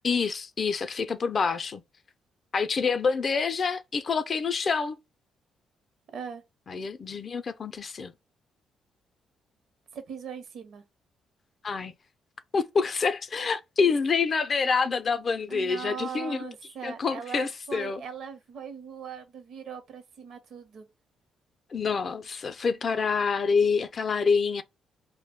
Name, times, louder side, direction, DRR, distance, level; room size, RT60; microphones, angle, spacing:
voice 1, 0.0-1.8 2.5-5.0 6.7-8.1 11.6-11.9 12.5-16.5 16.8-18.0 21.7-24.6, left 5 dB, 45° left, 0.4 m, -27 dB
voice 2, 6.1-6.4 9.9-10.8 15.5-20.9, right 7 dB, 70° right, 0.7 m, -40 dB
2.3 x 2.1 x 3.4 m
cardioid pair, 90°, 0 cm